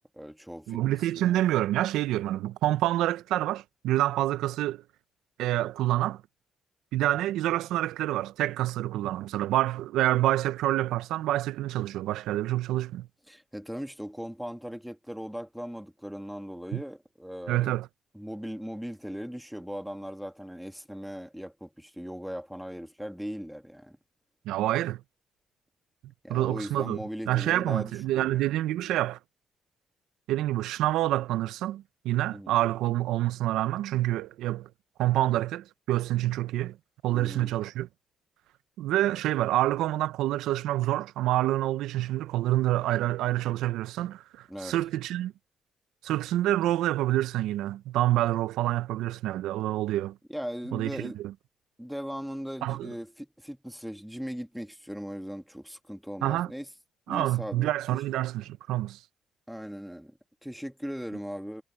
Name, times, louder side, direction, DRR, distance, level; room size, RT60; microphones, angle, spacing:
voice 1, 0.1-0.8 1.2-1.3 13.3-17.8 18.1-24.0 26.2-28.4 32.3-32.6 37.1-37.5 44.5-44.7 50.3-51.2 51.8-56.7 57.1-58.0 59.5-61.6, equal, ahead, 2.0 m, -39 dB
voice 2, 0.7-4.8 5.4-6.2 6.9-13.1 16.7-16.8 17.5-17.9 24.5-25.0 26.3-27.0 27.3-29.2 30.3-34.7 35.0-36.8 37.0-37.9 38.8-45.3 46.0-50.2 50.7-51.3 52.6-52.9 56.2-56.5 57.1-59.0, right 14 dB, 90° right, 0.5 m, -27 dB
cardioid pair, 90°, 0 cm